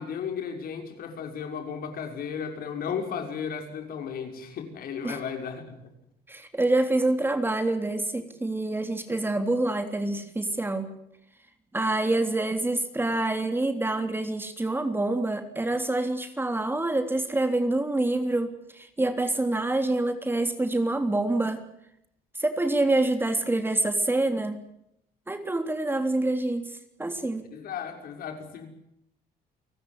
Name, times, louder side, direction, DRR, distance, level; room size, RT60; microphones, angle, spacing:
voice 1, 0.0-5.8 27.5-28.7, left 7 dB, 60° left, 5 dB, 6.0 m, -34 dB
voice 2, 6.3-10.9 11.7-21.6 22.4-24.6 25.3-27.5, right 2 dB, 10° right, 7 dB, 3.4 m, -26 dB
30.0 x 19.0 x 7.9 m, 0.77 s
cardioid pair, 110°, 17 cm